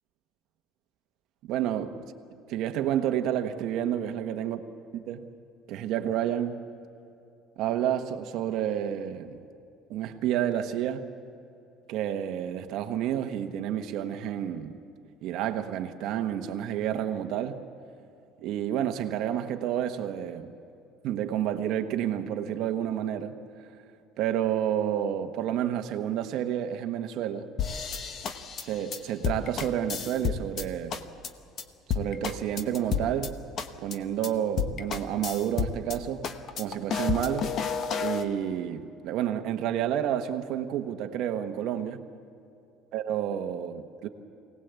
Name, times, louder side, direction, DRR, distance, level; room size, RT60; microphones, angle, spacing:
voice 1, 1.4-1.9 2.5-4.6 4.9-5.3 5.7-6.6 7.6-9.4 9.9-11.1 11.9-14.8 15.2-17.6 18.4-20.5 21.0-23.4 24.2-27.5 28.6-31.0 31.9-33.4 33.8-36.3 36.5-37.6 38.0-42.0 42.9-44.1, right 10 dB, 50° right, 1.3 m, -30 dB
sound 1, 27.6-30.6 30.9-31.3 31.6-31.7 31.9-33.3 33.6-34.0 34.2-34.3 34.6-36.0 36.2-38.2, left 6 dB, 35° left, 1.0 m, -31 dB
24.0 x 18.5 x 8.2 m
cardioid pair, 175°, 0 cm